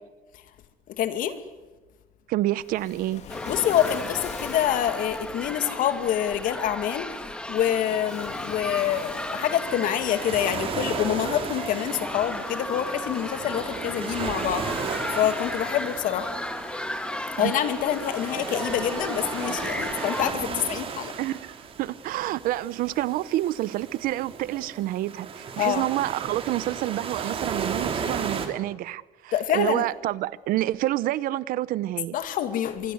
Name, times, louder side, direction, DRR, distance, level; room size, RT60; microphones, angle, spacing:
voice 1, 0.9-1.4 3.5-16.3 17.4-21.1 25.6-25.9 29.3-29.9 32.1-32.9, left 10 dB, 65° left, 2.4 m, -26 dB
voice 2, 2.3-3.2 17.4-17.5 21.2-32.1, right 15 dB, 75° right, 0.8 m, -28 dB
Waves surf, 2.6-20.8, left 7 dB, 50° left, 2.6 m, -46 dB
sound 1, 3.3-20.3, left 1 dB, 5° left, 1.8 m, -35 dB
sound 2, 8.6-28.5, right 6 dB, 40° right, 3.1 m, -35 dB
26.0 x 23.0 x 8.0 m
cardioid pair, 150°, 15 cm